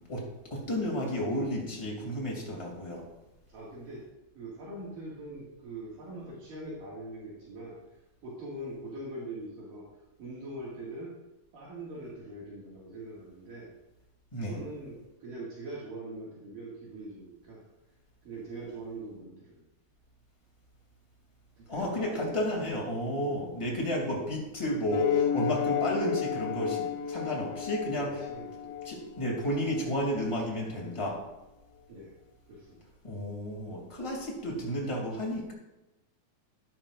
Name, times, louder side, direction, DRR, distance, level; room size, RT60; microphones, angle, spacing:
voice 1, 0.1-3.0 14.3-14.6 21.7-28.1 28.9-31.2 33.0-35.5, equal, 10° left, -2 dB, 1.9 m, -32 dB
voice 2, 3.5-4.1 4.4-9.8 10.2-11.1 11.5-13.7 14.5-17.7 18.2-19.7 21.6-22.7 23.2-23.4 28.0-28.8 31.9-32.1 32.5-32.8, right 1 dB, 65° right, -6 dB, 3.6 m, -42 dB
Viola D with FX, 24.9-29.9, left 9 dB, 75° left, 2.2 m, -32 dB
12.5 x 11.0 x 2.5 m, 1.0 s
omnidirectional pair, 4.3 m